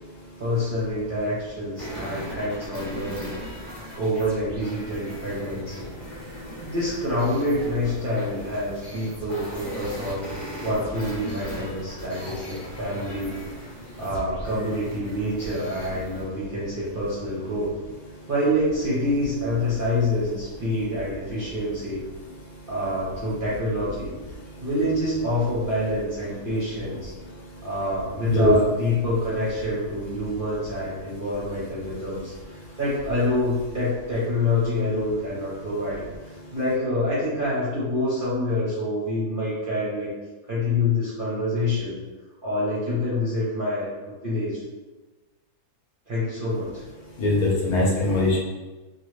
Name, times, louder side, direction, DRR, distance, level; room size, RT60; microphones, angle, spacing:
voice 1, 0.4-3.3 4.0-5.9 6.6-10.3 10.6-13.4 14.0-17.7 18.3-22.0 22.7-24.1 24.6-27.1 27.6-32.3 32.8-40.1 40.5-42.0 42.4-43.9 44.2-44.6 46.1-46.8, left 1 dB, 45° right, -9 dB, 0.7 m, -26 dB
sound 1, 1.8-16.2, equal, ahead, 0.4 m, -38 dB
voice 2, 47.2-48.4, left 2 dB, 65° left, -4 dB, 1.1 m, -21 dB
3.0 x 2.4 x 3.1 m, 1.2 s
omnidirectional pair, 1.9 m